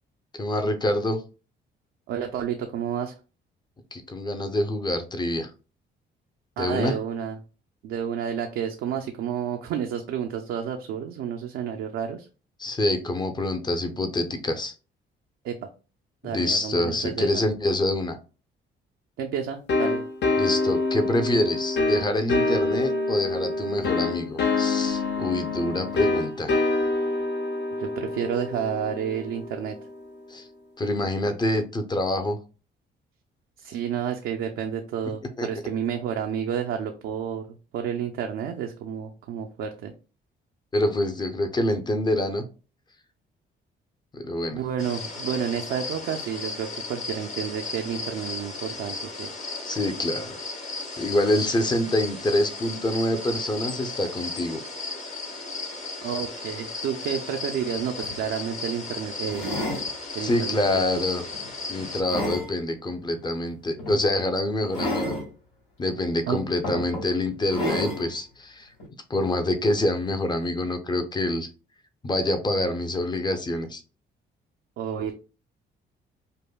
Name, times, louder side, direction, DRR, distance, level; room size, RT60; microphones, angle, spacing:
voice 1, 0.3-1.2 3.9-5.5 6.6-7.0 12.6-14.7 16.2-18.2 20.4-26.6 30.3-30.4 30.8-32.4 35.4-35.5 40.7-42.4 44.1-44.6 49.6-54.6 60.2-61.2 61.7-65.2 65.8-68.7 69.1-71.5 72.0-73.8, left 1 dB, 20° left, 7 dB, 0.6 m, -26 dB
voice 2, 2.1-3.1 6.6-7.4 7.8-12.3 15.4-15.6 16.2-17.4 19.2-20.0 27.8-29.8 33.6-37.5 37.7-39.9 44.5-49.3 56.0-59.6 60.1-60.8 66.3-66.4 74.8-75.1, right 8 dB, 80° right, 3 dB, 0.5 m, -30 dB
sound 1, 19.7-30.2, left 3 dB, 60° left, 0.8 m, -26 dB
sound 2, 44.8-62.0, left 3 dB, 35° left, 1.0 m, -35 dB
sound 3, 57.6-57.7 58.0-58.2 59.3-59.9 60.5-60.8 61.3-62.5 63.8-64.0 64.7-65.2 66.1-66.2 66.6-67.1 67.5-68.0 68.8-68.9, left 1 dB, 80° left, 1.9 m, -30 dB
5.2 x 2.1 x 2.2 m, 0.34 s
cardioid pair, 90°, 20 cm